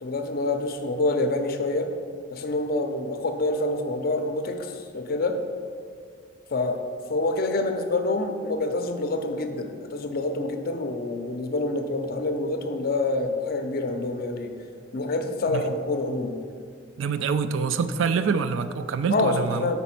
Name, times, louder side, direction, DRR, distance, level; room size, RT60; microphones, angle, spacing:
voice 1, 0.0-1.9 2.3-5.4 6.5-6.8 7.1-14.5 14.9-16.4 19.1-19.8, left 2 dB, 45° left, 6 dB, 0.5 m, -27 dB
voice 2, 17.0-19.6, right 5 dB, 70° right, 11 dB, 0.3 m, -25 dB
5.1 x 4.1 x 5.8 m, 2.2 s
head